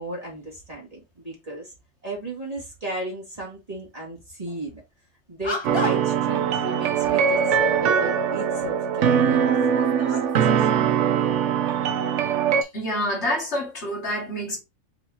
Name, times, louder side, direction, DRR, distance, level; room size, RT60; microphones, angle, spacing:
voice 1, 0.0-1.7 2.0-4.8 5.3-10.6, right 1 dB, 30° right, 2.1 m, -35 dB
sound 1, 4.5-4.7 5.4-6.2 6.8-7.4 8.3-8.4 9.0-10.6, left 2 dB, 25° left, 0.7 m, -35 dB
sound 2, 5.6-12.6, right 7 dB, 70° right, 0.9 m, -22 dB
sound 3, 5.7-10.3, right 9 dB, 90° right, 1.1 m, -34 dB
voice 2, 12.7-14.6, equal, 60° left, 2.1 m, -27 dB
4.7 x 3.9 x 2.8 m
omnidirectional pair, 1.3 m